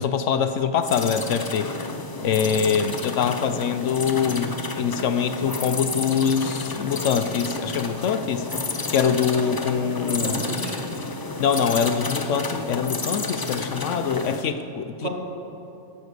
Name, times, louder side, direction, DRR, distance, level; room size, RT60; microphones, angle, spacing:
voice 1, 0.0-1.7 2.2-8.5 8.9-10.4 11.4-15.1, left 7 dB, 70° left, 10 dB, 0.9 m, -24 dB
sound 1, 0.8-14.5, left 3 dB, 35° left, 0.4 m, -31 dB
voice 2, 10.0-10.8 15.0-15.1, right 1 dB, 55° right, -1 dB, 2.3 m, -31 dB
11.5 x 11.0 x 6.8 m, 2.7 s
omnidirectional pair, 1.4 m